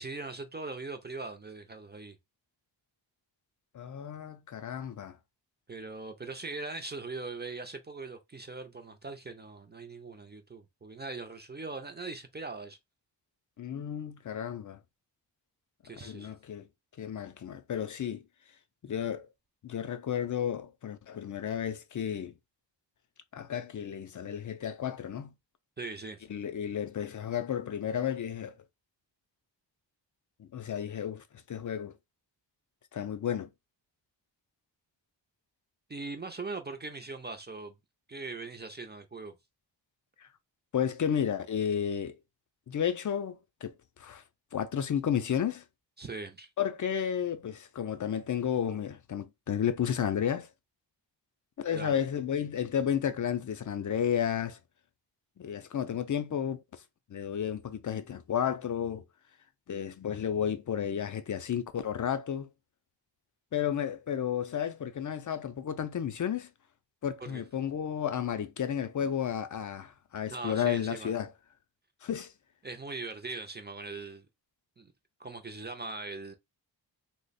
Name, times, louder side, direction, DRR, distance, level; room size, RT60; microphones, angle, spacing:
voice 1, 0.0-2.2 5.7-12.8 15.8-16.3 25.8-26.3 35.9-37.7 38.1-39.3 46.0-46.5 51.7-52.0 67.3-67.4 70.3-71.1 72.6-74.3 74.8-74.9 75.2-76.3, right 3 dB, 25° right, 0.4 m, -40 dB
voice 2, 3.7-5.1 13.6-14.8 16.0-16.6 17.0-18.2 18.8-19.3 19.6-22.3 23.3-25.3 26.3-28.5 30.4-31.9 32.9-33.5 40.7-42.2 42.7-44.2 44.5-45.6 46.6-50.5 51.6-54.6 55.4-56.6 57.1-59.0 59.7-62.5 63.5-66.5 67.0-71.3 72.0-72.3, left 9 dB, 45° left, 0.5 m, -32 dB
2.9 x 2.1 x 4.0 m
wide cardioid pair, 130°, 45 cm